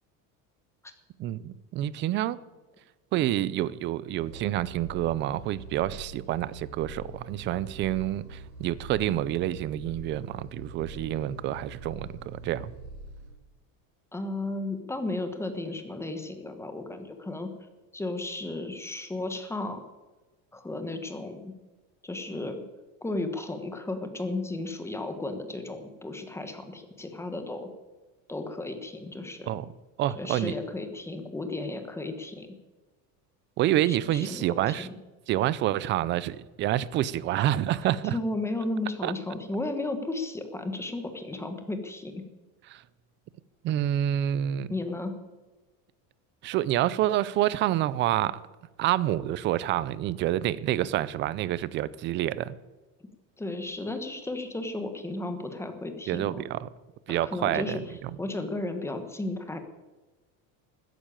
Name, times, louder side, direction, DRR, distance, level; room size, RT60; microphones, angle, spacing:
voice 1, 1.2-2.4 3.1-12.7 29.5-29.7 30.0-30.5 33.6-34.9 35.3-38.2 39.0-39.1 42.7-42.8 43.6-44.7 46.4-48.4 48.8-52.5 56.1-56.7 57.1-58.1, right 13 dB, 30° right, 0.4 m, -28 dB
sound 1, 4.2-13.3, right 2 dB, 50° right, 4.1 m, -44 dB
voice 2, 14.1-17.5 17.9-19.8 20.5-21.5 22.0-22.6 23.0-27.7 28.3-29.5 30.1-32.5 33.8-34.9 38.0-42.1 44.7-45.1 53.4-56.4 57.1-57.8 58.2-59.6, left 2 dB, 5° left, 1.3 m, -34 dB
14.0 x 10.0 x 8.7 m
cardioid pair, 170°, 41 cm